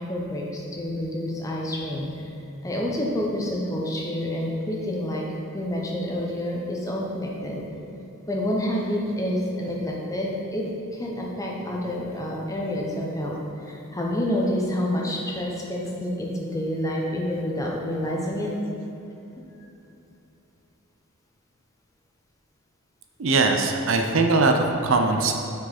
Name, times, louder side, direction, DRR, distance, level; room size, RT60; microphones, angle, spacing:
voice 1, 0.0-2.3 2.6-5.2 5.5-7.6 8.3-10.7 10.9-18.5, left 1 dB, 15° left, -2 dB, 0.7 m, -28 dB
voice 2, 23.2-25.3, right 3 dB, 60° right, 4 dB, 0.5 m, -21 dB
6.5 x 4.7 x 4.3 m, 2.8 s
head